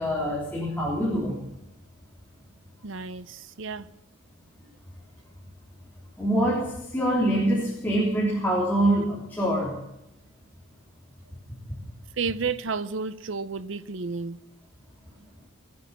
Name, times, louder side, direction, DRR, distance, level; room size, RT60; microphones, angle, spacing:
voice 1, 0.0-1.4 6.2-9.8, right 1 dB, 10° left, 3.5 m, -25 dB
voice 2, 2.8-3.9 12.2-14.4, right 5 dB, 65° right, 0.7 m, -31 dB
20.5 x 9.5 x 7.2 m
head